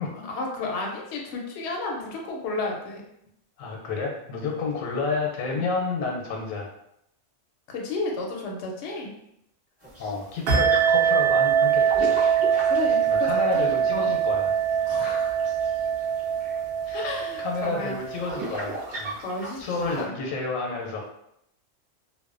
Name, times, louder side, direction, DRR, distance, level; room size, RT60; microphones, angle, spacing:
voice 1, 0.2-3.0 5.5-5.7 7.7-9.1 12.6-14.1 14.9-15.4 16.9-18.0 19.2-20.1, left 3 dB, 65° left, 0 dB, 0.8 m, -32 dB
voice 2, 3.6-6.7 10.0-12.2 13.1-14.6 15.0-15.3 16.9-19.2 19.6-21.0, left 4 dB, 90° left, 0 dB, 1.0 m, -30 dB
sound 1, 9.8-20.0, right 1 dB, 20° right, 1.3 m, -39 dB
sound 2, 10.5-18.6, right 8 dB, 70° right, 0.9 m, -23 dB
2.5 x 2.1 x 2.4 m, 0.77 s
omnidirectional pair, 1.4 m